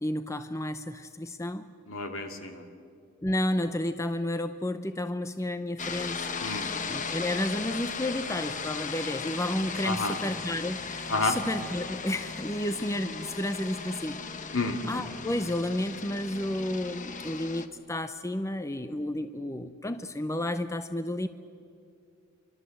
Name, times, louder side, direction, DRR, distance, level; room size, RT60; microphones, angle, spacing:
voice 1, 0.0-1.7 3.2-6.3 6.9-14.4 14.9-21.3, left 1 dB, 15° left, 10 dB, 0.6 m, -31 dB
voice 2, 1.9-2.7 6.4-6.7 9.8-10.2 11.1-11.4 14.5-14.8, left 3 dB, 70° left, 4 dB, 2.5 m, -29 dB
sound 1, 5.8-17.7, left 5 dB, 35° left, 1.1 m, -37 dB
27.5 x 24.0 x 7.8 m, 2.4 s
head